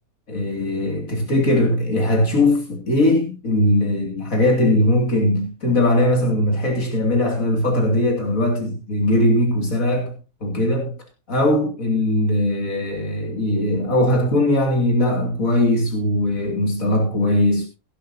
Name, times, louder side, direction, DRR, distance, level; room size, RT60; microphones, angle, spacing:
voice 1, 0.3-11.0 11.3-17.7, left 1 dB, 65° left, 3.1 m, -20 dB
17.0 x 11.5 x 2.8 m
omnidirectional pair, 1.5 m